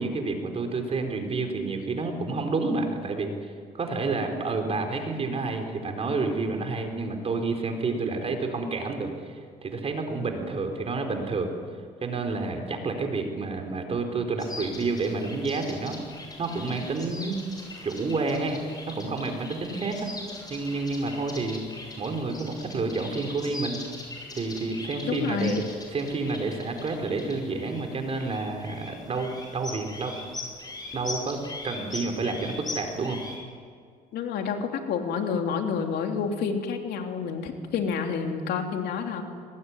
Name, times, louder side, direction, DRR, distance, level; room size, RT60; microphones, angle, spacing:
voice 1, 0.0-11.5 12.0-16.0 16.4-17.4 17.8-20.1 20.5-21.6 22.0-23.8 24.4-25.6 25.9-30.2 30.9-33.2, right 3 dB, 35° right, 5 dB, 4.3 m, -29 dB
sound 1, 14.4-33.4, left 2 dB, 25° left, 7.7 m, -41 dB
voice 2, 25.0-25.6 34.1-39.2, left 6 dB, 70° left, 4 dB, 3.3 m, -29 dB
24.0 x 20.5 x 9.8 m, 2.1 s
cardioid pair, 110°, 17 cm